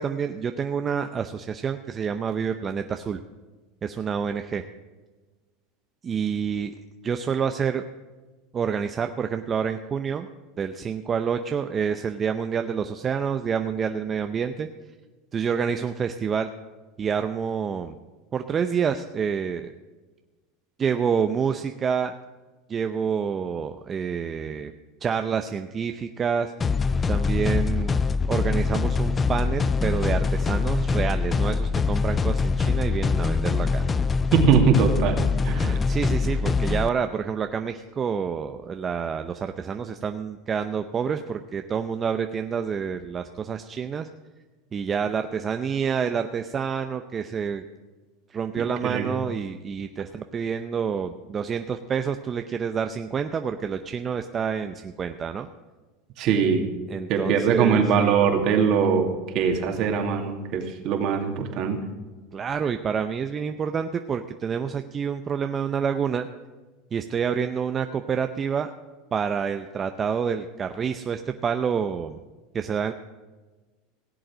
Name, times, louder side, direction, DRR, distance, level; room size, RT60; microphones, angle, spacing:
voice 1, 0.0-3.2 3.8-4.6 6.0-6.7 7.0-7.8 8.5-10.3 10.6-14.7 15.3-16.5 17.0-18.0 18.3-19.7 20.8-22.1 22.7-24.7 25.0-26.5 27.1-28.0 28.3-33.8 35.7-44.1 44.7-47.6 48.3-55.5 56.9-57.8 62.3-66.3 66.9-68.7 69.1-72.2 72.5-72.9, right 6 dB, 30° right, 7 dB, 0.6 m, -28 dB
sound 1, 26.6-36.9, left 4 dB, 25° left, 0.4 m, -24 dB
voice 2, 34.3-35.8 48.8-49.1 56.2-56.7 57.1-61.8, right 6 dB, 55° right, 3 dB, 2.5 m, -22 dB
17.0 x 7.8 x 6.2 m, 1.3 s
supercardioid pair, 110°, 0 cm